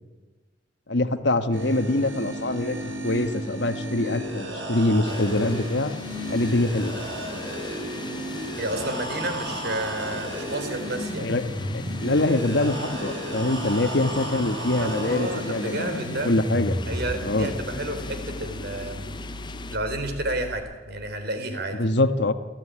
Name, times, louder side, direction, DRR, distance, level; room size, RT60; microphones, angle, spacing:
voice 1, 0.9-5.9 6.3-6.9 11.2-11.4 12.0-16.8 17.2-17.5 21.8-22.3, left 2 dB, 65° left, 9 dB, 1.4 m, -24 dB
sound 1, 1.5-20.6, right 1 dB, 80° right, 6.9 m, -34 dB
sound 2, 5.0-19.8, left 3 dB, 25° left, 0.7 m, -38 dB
voice 2, 8.6-11.3 14.8-16.3 16.9-19.0 19.7-21.8, right 1 dB, 60° right, 7 dB, 4.1 m, -31 dB
29.5 x 13.5 x 10.0 m, 1.3 s
head